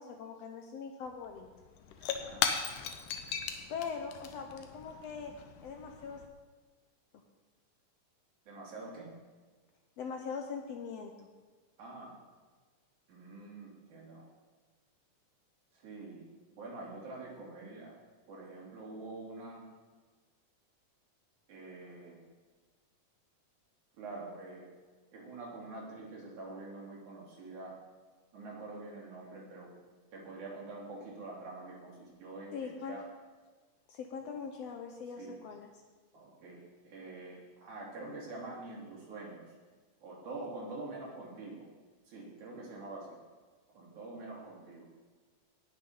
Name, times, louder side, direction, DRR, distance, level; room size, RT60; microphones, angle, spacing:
voice 1, 0.0-1.5 3.7-5.3 5.6-6.2 10.0-11.3 32.5-33.0 33.9-35.7, left 6 dB, 70° left, 4 dB, 1.7 m, -41 dB
Shatter / Crushing, 1.1-1.2 1.4-6.3, left 7 dB, 90° left, 2.4 m, -38 dB
voice 2, 8.5-9.1 11.8-12.2 13.1-14.3 15.7-17.9 18.3-19.6 21.5-22.2 24.0-24.7 25.1-27.8 28.3-29.7 30.1-33.0 35.2-35.4 36.1-39.5 40.0-41.7 42.1-43.2 43.7-44.9, right 2 dB, 75° right, -4 dB, 4.2 m, -46 dB
18.0 x 6.3 x 5.6 m, 1.4 s
omnidirectional pair, 3.5 m